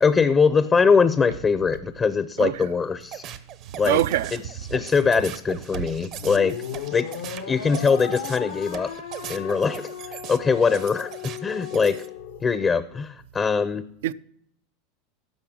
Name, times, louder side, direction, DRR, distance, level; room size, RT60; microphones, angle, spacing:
voice 1, 0.0-3.2 3.8-4.0 4.7-6.6 6.9-7.1 7.5-8.9 9.3-12.0 12.4-13.9, left 5 dB, 25° left, 0.5 m, -22 dB
voice 2, 2.4-2.7 3.7-4.4 14.0-14.1, right 14 dB, 75° right, 0.3 m, -24 dB
sound 1, 3.0-12.1, right 10 dB, 50° right, 0.7 m, -40 dB
sound 2, 6.1-12.6, left 9 dB, 85° left, 0.8 m, -36 dB
10.5 x 6.3 x 5.9 m
hypercardioid pair, 105°, 0 cm